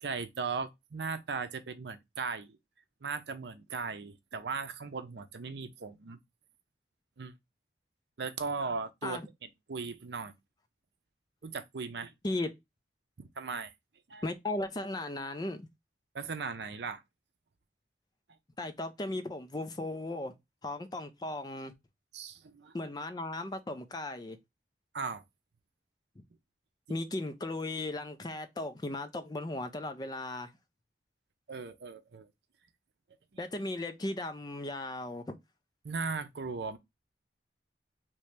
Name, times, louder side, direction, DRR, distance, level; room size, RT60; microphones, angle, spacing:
voice 1, 0.0-2.6 3.0-6.2 7.2-7.3 8.2-9.2 9.7-10.3 11.4-12.1 13.2-13.7 14.1-14.2 16.1-17.0 22.1-22.8 24.9-25.2 31.5-32.3 35.8-36.8, right 4 dB, 70° right, 0.6 m, -37 dB
voice 2, 14.2-15.7 18.6-20.3 20.6-21.7 22.7-24.4 26.9-30.5 33.4-35.4, left 2 dB, 25° left, 0.4 m, -36 dB
3.0 x 2.8 x 3.2 m
head